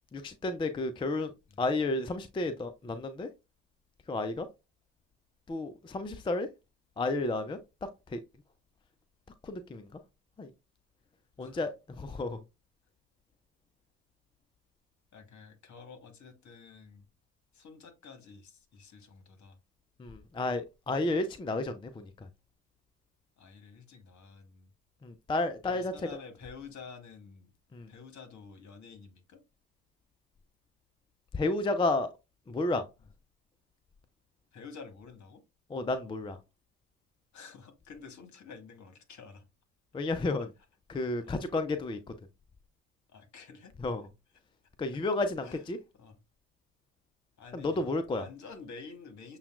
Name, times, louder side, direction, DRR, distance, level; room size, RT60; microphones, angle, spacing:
voice 1, 0.1-1.3 1.6-3.3 4.1-4.5 5.5-6.5 7.0-7.6 8.1-8.2 9.4-9.9 10.4-10.5 11.4-11.7 12.0-12.4 20.0-22.3 25.0-25.9 27.7-27.9 31.3-32.1 32.5-32.8 35.7-36.4 39.9-40.5 40.9-42.1 43.8-44.1 44.8-45.8 47.5-48.3, left 2 dB, 15° left, 0.4 m, -31 dB
voice 2, 11.4-11.7 15.1-17.1 17.5-19.6 23.4-24.7 25.6-27.5 27.9-29.4 34.5-35.4 37.3-39.5 40.9-41.4 43.1-43.7 45.4-45.6 45.9-46.2 47.4-47.9 48.1-49.4, left 5 dB, 45° left, 1.2 m, -50 dB
6.8 x 2.3 x 2.3 m
figure-of-eight pair, 45°, 38 cm